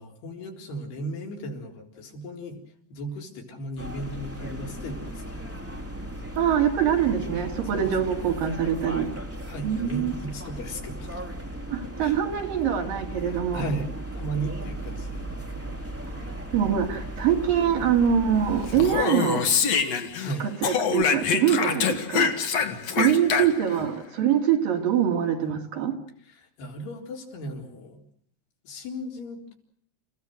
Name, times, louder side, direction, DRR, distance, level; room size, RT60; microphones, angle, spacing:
voice 1, 0.0-2.6 2.9-5.6 7.6-8.3 9.5-11.2 11.8-12.2 13.2-15.2 20.2-20.6 22.4-23.3 26.3-28.0 28.6-29.6, right 1 dB, 75° left, 1 dB, 5.9 m, -36 dB
sound 1, 3.8-19.0, right 1 dB, 5° right, 1.8 m, -36 dB
voice 2, 6.4-9.1 9.6-10.1 11.7-13.7 16.5-19.4 20.4-22.4 23.0-25.9, right 9 dB, 60° right, 3 dB, 3.9 m, -24 dB
Speech, 18.7-20.3 20.6-23.8, left 6 dB, 50° left, 2.5 m, -25 dB
30.0 x 16.5 x 7.8 m, 0.67 s
omnidirectional pair, 4.7 m